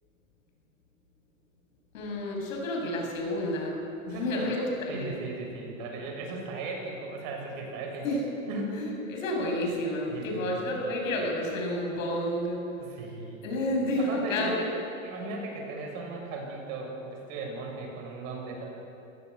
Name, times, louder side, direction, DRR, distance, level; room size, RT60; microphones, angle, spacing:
voice 1, 1.9-3.8 4.1-5.1 8.0-8.2 8.7-12.6 13.4-14.5, left 1 dB, 75° left, 0 dB, 7.9 m, -30 dB
voice 2, 4.1-4.5 4.9-8.1 8.5-8.8 10.1-10.9 12.8-13.4 14.0-14.5 15.0-18.7, right 3 dB, 50° right, 1 dB, 7.0 m, -37 dB
24.5 x 17.5 x 8.4 m, 2.9 s
supercardioid pair, 135°, 40 cm